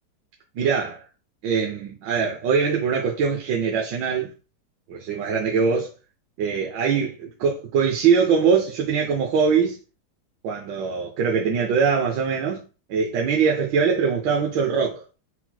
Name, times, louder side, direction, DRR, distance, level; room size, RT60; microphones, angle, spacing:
voice 1, 0.6-1.0 1.4-4.3 4.9-5.9 6.4-9.8 10.4-12.6 12.9-15.0, right 6 dB, 85° right, 1.4 m, -22 dB
4.4 x 3.9 x 2.2 m
omnidirectional pair, 1.9 m